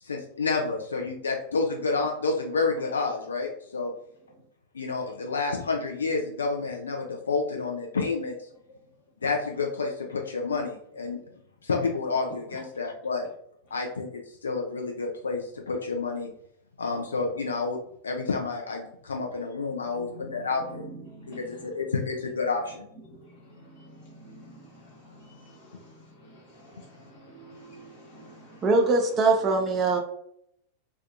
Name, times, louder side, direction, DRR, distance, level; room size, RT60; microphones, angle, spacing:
voice 1, 0.0-3.9 4.7-8.5 9.2-11.2 11.6-13.3 13.7-16.3 16.8-17.8 18.0-20.9 21.3-22.9, left 4 dB, 70° left, 1 dB, 0.3 m, -29 dB
voice 2, 8.5-9.0 12.5-12.6 19.3-19.5 19.8-21.8 22.9-30.0, right 1 dB, 50° left, -2 dB, 1.1 m, -48 dB
voice 3, 28.6-30.0, right 3 dB, 25° right, 3 dB, 0.4 m, -22 dB
2.5 x 2.2 x 2.4 m, 0.70 s
figure-of-eight pair, 90°, 0 cm